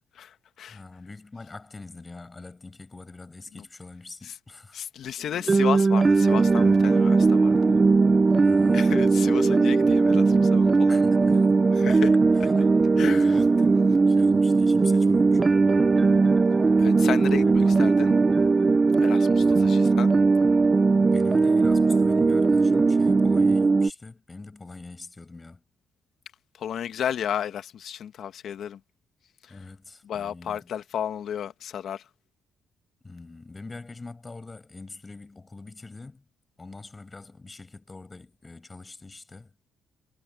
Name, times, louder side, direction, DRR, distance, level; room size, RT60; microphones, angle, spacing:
voice 1, 0.1-0.8 3.6-3.7 4.2-4.3 4.7-7.5 8.7-11.1 11.7-12.1 13.0-13.3 16.8-18.1 19.0-20.1 26.5-28.8 29.4-29.6 30.0-32.1, left 9 dB, 65° left, 1.6 m, -33 dB
voice 2, 0.7-4.8 8.4-9.0 10.9-11.7 12.3-15.4 17.4-17.7 19.4-19.8 21.1-25.6 29.5-30.7 33.0-36.2 36.6-39.5, left 3 dB, 25° left, 5.4 m, -43 dB
sound 1, 5.5-23.9, right 4 dB, 30° right, 0.3 m, -19 dB
cardioid pair, 90°, 0 cm